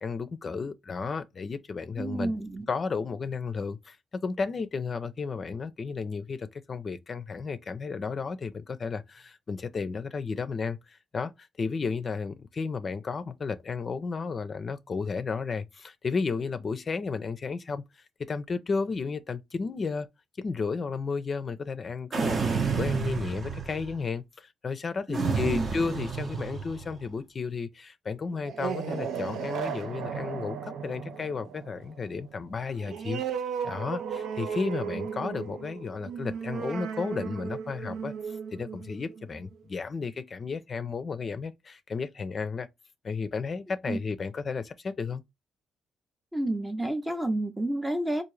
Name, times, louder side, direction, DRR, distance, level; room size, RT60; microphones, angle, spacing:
voice 1, 0.0-2.3 2.7-4.0 4.2-20.1 20.4-33.2 33.6-42.7 43.0-45.2, left 5 dB, 40° left, 0.5 m, -33 dB
voice 2, 2.0-2.6 25.1-25.7 43.9-44.0 46.3-48.2, right 1 dB, 10° right, 0.6 m, -30 dB
sound 1, 22.1-24.0 25.1-26.9, right 5 dB, 45° right, 0.7 m, -30 dB
sound 2, 28.3-39.5, right 7 dB, 75° right, 0.5 m, -36 dB
3.7 x 2.6 x 3.1 m
cardioid pair, 90°, 0 cm